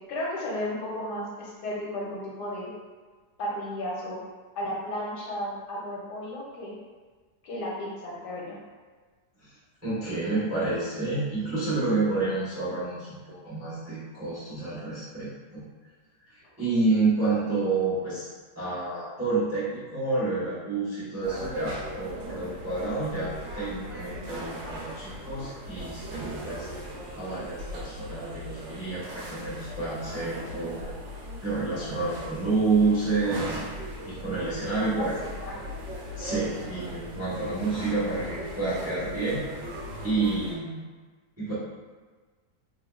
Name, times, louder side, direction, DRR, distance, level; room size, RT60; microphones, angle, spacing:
voice 1, 0.1-2.7 3.4-4.2 4.5-6.7 7.4-8.6 34.7-35.6, left 1 dB, 75° left, -5 dB, 1.4 m, -34 dB
voice 2, 9.8-15.6 16.3-18.3 18.6-26.7 27.1-30.9 31.4-33.6 34.0-35.1 36.2-39.4 40.0-40.8 41.4-41.5, right 3 dB, 20° right, -10 dB, 0.4 m, -29 dB
sound 1, 21.2-40.6, right 1 dB, 80° right, 1.4 m, -38 dB
3.4 x 3.0 x 2.2 m, 1.4 s
omnidirectional pair, 1.9 m